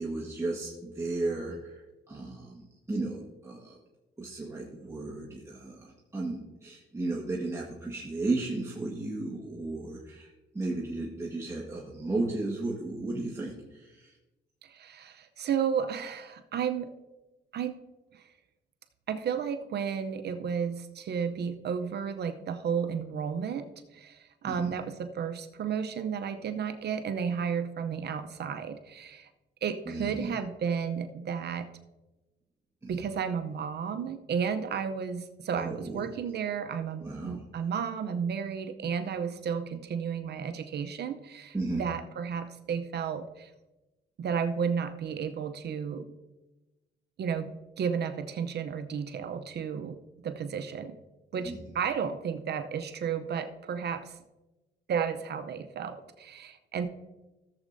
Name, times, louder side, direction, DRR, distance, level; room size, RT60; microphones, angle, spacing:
voice 1, 0.0-3.8 4.2-14.2 24.4-24.7 29.8-30.3 32.8-33.0 35.5-36.1 37.0-37.4 41.5-41.9 51.4-51.6, right 2 dB, 15° right, -3 dB, 1.5 m, -34 dB
voice 2, 14.6-16.9 17.5-17.8 18.1-18.3 19.1-29.3 29.6-31.7 32.9-43.5 44.2-46.1 47.2-50.0 50.2-51.0 51.3-54.2 54.9-56.9, right 7 dB, 55° right, 9 dB, 0.7 m, -33 dB
15.0 x 7.3 x 2.7 m, 1.1 s
cardioid pair, 90°, 20 cm